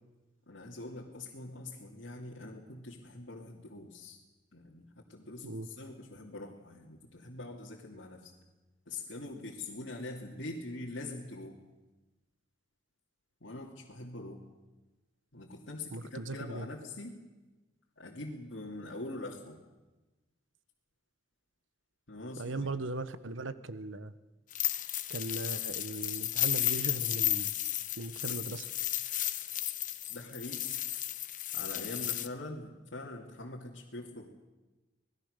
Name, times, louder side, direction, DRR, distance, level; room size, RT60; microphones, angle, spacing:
voice 1, 0.5-4.2 4.5-8.3 8.9-11.6 13.4-14.5 15.3-17.2 18.0-19.6 22.1-22.7 30.1-30.7 31.5-34.3, left 2 dB, 70° left, -4 dB, 2.7 m, -43 dB
voice 2, 15.9-16.7 22.4-24.1 25.1-27.5 28.0-28.7, right 2 dB, 85° right, 13 dB, 1.2 m, -38 dB
sound 1, 24.5-32.3, left 13 dB, 45° left, 1.0 m, -33 dB
25.5 x 19.5 x 6.7 m, 1.1 s
head